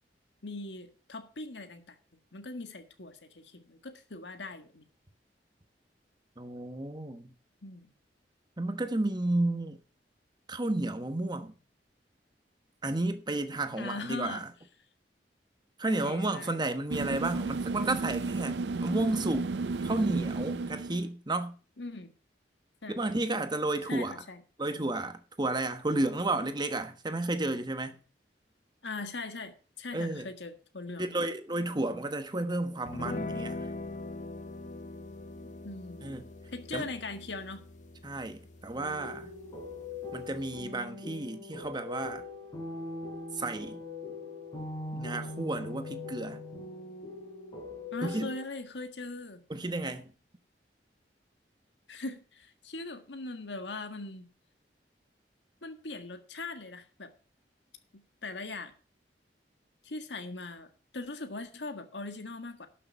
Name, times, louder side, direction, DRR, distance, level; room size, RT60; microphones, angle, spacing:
voice 1, 0.4-2.0 2.3-4.9 7.6-7.9 13.8-14.4 15.9-16.8 21.8-22.1 22.8-23.0 23.9-24.4 28.8-31.1 35.4-36.1 36.5-37.6 47.9-49.4 51.9-54.3 55.6-57.1 57.9-58.7 59.8-62.7, left 3 dB, 85° left, 1.6 m, -40 dB
voice 2, 6.4-7.3 8.6-9.8 10.5-11.5 12.8-14.5 15.8-19.5 19.8-21.5 22.9-24.1 24.6-28.0 29.9-30.3 31.0-33.6 36.0-36.3 36.7-36.9 38.0-39.3 40.1-42.2 43.4-43.8 44.9-46.4 48.0-48.3 49.5-50.1, right 2 dB, 25° right, 1.2 m, -32 dB
sound 1, 16.9-21.1, right 3 dB, 75° right, 0.5 m, -33 dB
sound 2, 32.9-40.6, left 2 dB, 45° left, 0.7 m, -42 dB
sound 3, 38.7-48.4, left 3 dB, 25° left, 4.0 m, -41 dB
12.0 x 6.7 x 5.4 m
head